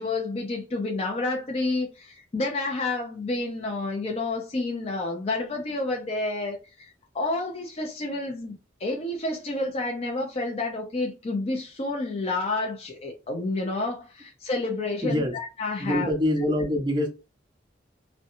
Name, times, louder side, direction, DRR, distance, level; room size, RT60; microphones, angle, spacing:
voice 1, 0.0-16.1, left 2 dB, 35° left, 0.4 m, -29 dB
voice 2, 15.0-15.4 15.8-17.1, left 1 dB, 25° right, 0.6 m, -25 dB
2.7 x 2.1 x 2.5 m
head